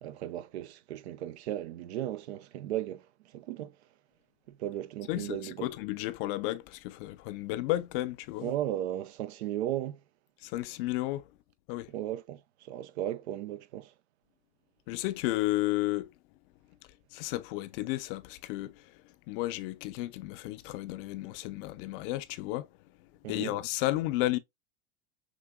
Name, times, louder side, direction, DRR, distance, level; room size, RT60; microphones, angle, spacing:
voice 1, 0.0-3.1 3.3-3.7 4.5-5.7 8.4-10.0 11.9-13.9 23.2-23.5, right 12 dB, 70° right, 0.6 m, -36 dB
voice 2, 5.1-8.5 10.4-11.2 11.7-11.9 14.9-16.1 17.1-18.8 19.3-22.7 23.3-24.4, left 17 dB, 55° left, 0.6 m, -33 dB
6.1 x 2.6 x 2.3 m
hypercardioid pair, 100°, 34 cm